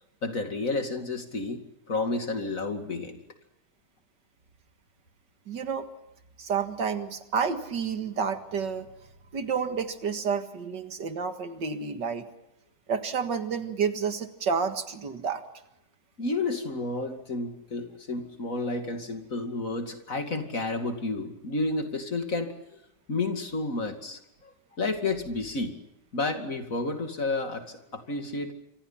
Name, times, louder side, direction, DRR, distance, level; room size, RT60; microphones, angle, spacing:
voice 1, 0.2-3.2 16.2-22.6 23.1-25.8 26.1-28.5, left 3 dB, 50° left, 5 dB, 2.8 m, -31 dB
voice 2, 5.5-5.9 6.4-8.9 9.3-12.3 12.9-15.4, right 6 dB, 85° right, 7 dB, 2.4 m, -30 dB
28.0 x 25.5 x 5.8 m, 0.85 s
omnidirectional pair, 1.9 m